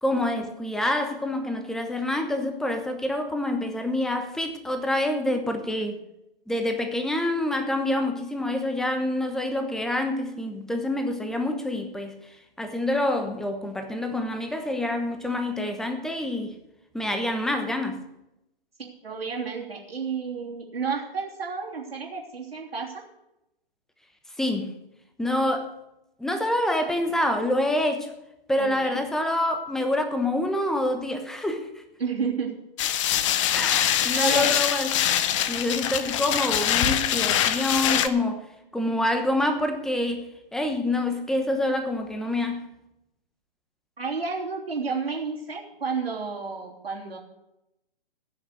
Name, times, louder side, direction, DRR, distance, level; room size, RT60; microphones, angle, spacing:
voice 1, 0.0-6.0 6.5-12.2 12.6-16.6 16.9-18.0 24.4-24.7 25.2-25.7 26.2-28.1 28.5-31.7 33.5-35.0 35.5-38.4 38.7-42.7, left 1 dB, ahead, 1.0 m, -27 dB
voice 2, 18.8-23.0 28.6-29.0 32.0-32.5 33.0-33.1 34.1-34.5 44.0-47.2, right 5 dB, 85° right, 3.2 m, -31 dB
sound 1, 32.8-38.1, left 11 dB, 35° left, 0.8 m, -24 dB
16.0 x 6.7 x 6.6 m
figure-of-eight pair, 130°, 29 cm